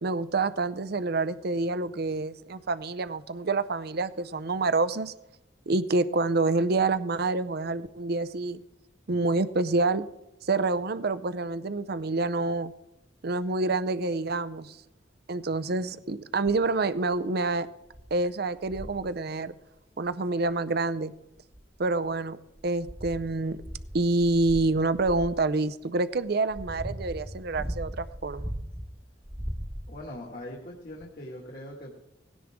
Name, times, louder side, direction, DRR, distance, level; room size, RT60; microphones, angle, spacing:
voice 1, 0.0-5.1 5.7-8.6 9.1-10.1 10.4-12.7 13.2-14.8 15.3-17.7 18.1-19.5 20.0-21.1 21.8-23.6 23.9-28.5, right 3 dB, 55° right, 14 dB, 0.6 m, -27 dB
sound 1, 16.5-16.8 17.4-17.5 17.9-18.1 18.6-19.1 20.5-20.6 21.4-22.1 22.6-25.4 26.1-28.9 29.2-30.2 31.0-31.1, equal, 15° right, 1.2 m, -38 dB
voice 2, 29.9-32.0, left 1 dB, 50° left, -2 dB, 2.2 m, -41 dB
18.5 x 16.5 x 3.7 m, 0.94 s
head